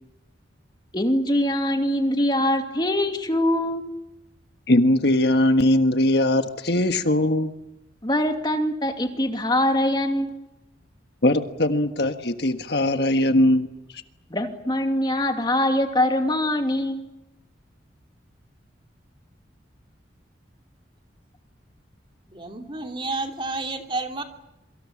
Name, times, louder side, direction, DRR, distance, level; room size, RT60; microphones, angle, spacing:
voice 1, 0.9-3.8 8.0-10.4 14.3-17.0, left 1 dB, 25° left, 5 dB, 2.6 m, -23 dB
voice 2, 4.7-7.5 11.2-13.7 13.9-14.0, left 1 dB, 60° left, 7 dB, 1.6 m, -20 dB
voice 3, 22.3-24.2, right 3 dB, 25° right, 4 dB, 2.9 m, -30 dB
27.0 x 24.5 x 7.3 m, 0.90 s
head